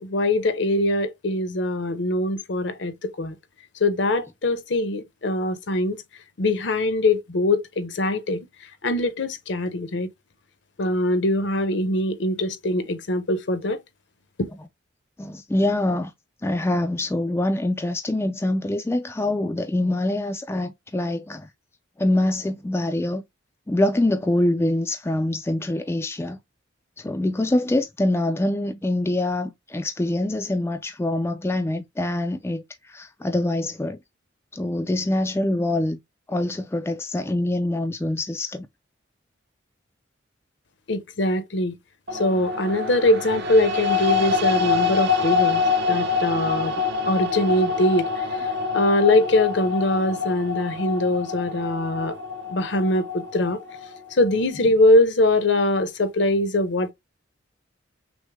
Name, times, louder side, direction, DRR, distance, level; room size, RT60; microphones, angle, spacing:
voice 1, 0.0-3.3 3.8-6.0 6.4-8.5 8.8-10.1 10.8-13.8 14.4-14.5 40.9-41.8 42.1-45.6 45.9-46.7 47.1-48.5 48.7-52.2 52.5-53.6 54.1-56.9, left 1 dB, 60° left, 0.7 m, -22 dB
voice 2, 15.2-16.1 16.4-21.5 22.0-23.2 23.7-26.4 27.0-34.0 34.5-36.0 36.3-38.7, left 1 dB, 15° left, 0.3 m, -24 dB
sound 1, 42.1-54.3, left 5 dB, 55° right, 0.6 m, -26 dB
6.2 x 2.1 x 3.4 m
head